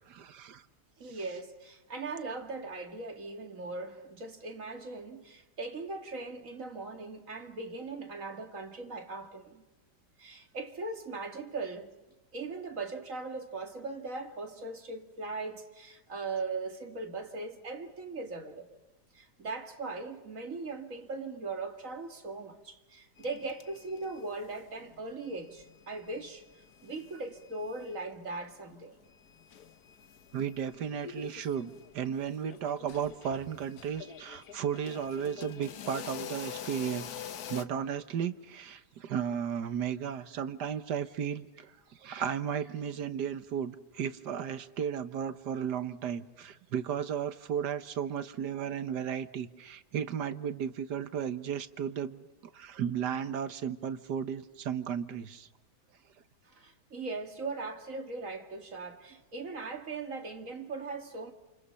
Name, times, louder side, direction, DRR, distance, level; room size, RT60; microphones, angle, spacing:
voice 1, 0.1-0.6 1.1-1.2 30.3-37.1 37.5-41.7 42.0-52.3 52.5-55.5, right 8 dB, 75° right, 1.7 m, -34 dB
voice 2, 1.0-9.6 10.2-11.9 12.3-18.8 19.1-29.0 42.1-42.2 56.4-61.3, right 3 dB, 50° right, 2.5 m, -39 dB
sound 1, 23.2-24.6 24.8-28.1 28.4-28.5 29.0-37.6, left 9 dB, 65° left, 1.5 m, -46 dB
29.0 x 28.0 x 5.6 m
omnidirectional pair, 1.8 m